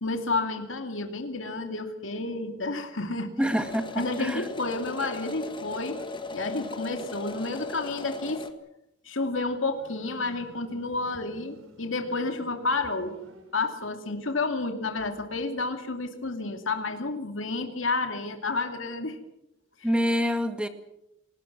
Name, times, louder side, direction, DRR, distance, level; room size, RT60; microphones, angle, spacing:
voice 1, 0.0-3.3 4.0-6.0 6.3-8.4 9.0-13.1 13.5-19.2 19.8-19.9, left 3 dB, 75° left, 6 dB, 2.6 m, -30 dB
sound 1, 3.4-8.5, left 3 dB, 25° left, 1.9 m, -38 dB
voice 2, 3.4-4.4 19.8-20.7, equal, 5° right, 8 dB, 2.0 m, -26 dB
Motorcycle, 9.7-14.0, right 1 dB, 85° right, 4.0 m, -50 dB
28.5 x 19.5 x 6.1 m, 0.83 s
head